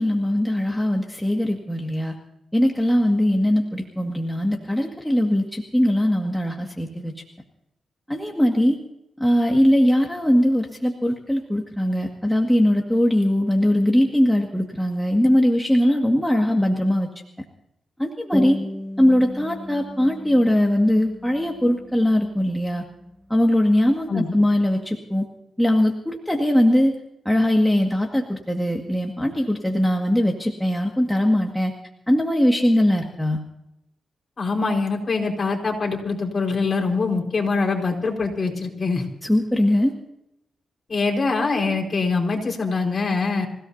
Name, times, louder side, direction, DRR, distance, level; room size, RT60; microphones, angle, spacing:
voice 1, 0.0-2.1 2.5-7.1 8.1-8.8 9.2-17.1 18.0-18.6 19.0-22.8 23.3-25.3 25.6-26.9 27.3-31.7 32.1-33.4 39.2-39.9, left 1 dB, 5° left, 1 dB, 1.9 m, -20 dB
sound 1, 18.3-23.3, left 1 dB, 25° right, 2.8 m, -35 dB
voice 2, 34.4-39.0 40.9-43.5, left 4 dB, 40° left, 0 dB, 4.8 m, -23 dB
27.0 x 17.0 x 2.8 m, 0.81 s
cardioid pair, 85°, 0 cm